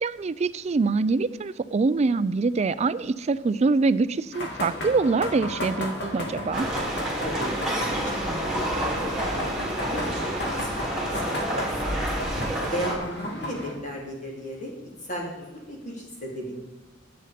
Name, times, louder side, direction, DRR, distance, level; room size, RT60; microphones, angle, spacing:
voice 1, 0.0-6.7, right 4 dB, 35° right, 16 dB, 0.3 m, -24 dB
sound 1, 4.3-13.7, left 1 dB, 60° left, 2.3 m, -34 dB
sound 2, 6.5-12.9, right 1 dB, 5° right, 3.1 m, -29 dB
voice 2, 6.9-16.6, equal, 40° left, -2 dB, 3.0 m, -36 dB
11.5 x 7.8 x 5.1 m, 1.2 s
head